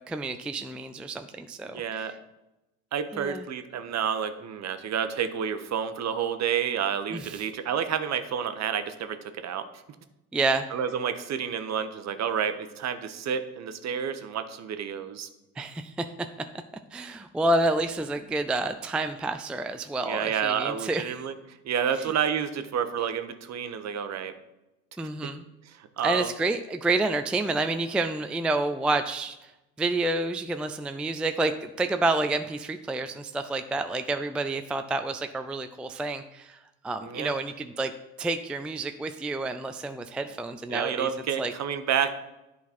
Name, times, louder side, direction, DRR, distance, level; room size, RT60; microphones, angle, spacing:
voice 1, 0.1-2.1 3.1-3.5 7.1-7.4 10.3-10.7 15.6-16.1 16.9-21.0 22.0-22.1 25.0-25.4 26.0-29.5 29.8-37.9 38.2-41.1 41.4-41.5, right 2 dB, 5° right, 8 dB, 0.4 m, -29 dB
voice 2, 1.6-2.1 2.9-9.7 10.7-15.3 20.0-21.3 21.6-24.3 26.0-26.3 37.0-37.3 40.7-42.2, right 8 dB, 45° right, 9 dB, 0.9 m, -29 dB
10.5 x 4.1 x 4.2 m, 0.95 s
hypercardioid pair, 70°, 39 cm